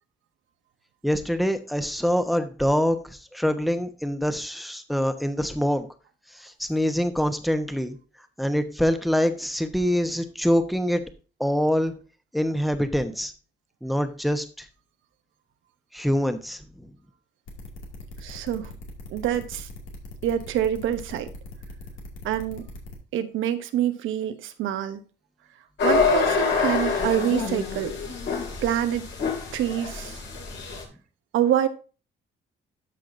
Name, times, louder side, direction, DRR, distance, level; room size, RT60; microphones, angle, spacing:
voice 1, 1.0-5.9 6.3-8.0 8.4-11.0 11.4-11.9 12.3-13.3 13.8-14.7 15.9-16.9, equal, ahead, 1.0 m, -25 dB
sound 1, 17.5-22.9, left 2 dB, 90° left, 2.3 m, -41 dB
voice 2, 18.2-18.7 19.1-19.7 20.2-21.3 22.2-22.7 23.1-25.0 25.8-27.9 28.6-29.1 29.5-30.2 31.3-31.7, right 10 dB, 85° right, 1.0 m, -26 dB
sound 2, 25.8-30.8, left 5 dB, 65° left, 2.7 m, -26 dB
13.0 x 5.7 x 2.7 m
cardioid pair, 90°, 20 cm